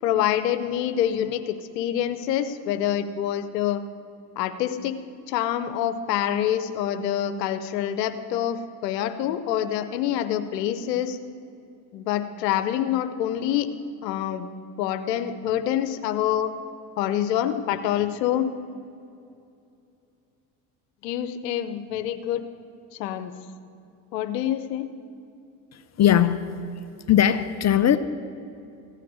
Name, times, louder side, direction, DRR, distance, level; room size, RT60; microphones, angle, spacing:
voice 1, 0.0-3.8 4.4-5.0 5.3-11.2 11.9-13.7 14.0-14.5 14.8-16.5 17.0-18.5 21.0-22.4 22.9-23.3 24.1-24.9, left 11 dB, 90° left, 10 dB, 0.8 m, -26 dB
voice 2, 25.7-26.4 27.1-28.0, left 10 dB, 35° left, 12 dB, 0.6 m, -19 dB
16.0 x 5.9 x 9.4 m, 2.6 s
hypercardioid pair, 80°, 48 cm